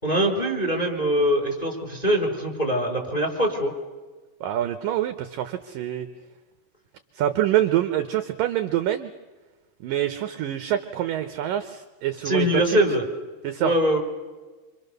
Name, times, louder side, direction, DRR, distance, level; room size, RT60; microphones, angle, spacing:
voice 1, 0.0-3.7 12.2-13.1 13.6-14.0, equal, 10° left, 2 dB, 4.3 m, -23 dB
voice 2, 4.4-6.1 7.1-9.1 9.8-12.8 13.4-13.7, right 12 dB, 75° right, 9 dB, 2.1 m, -26 dB
28.0 x 26.0 x 6.7 m, 1.3 s
omnidirectional pair, 5.0 m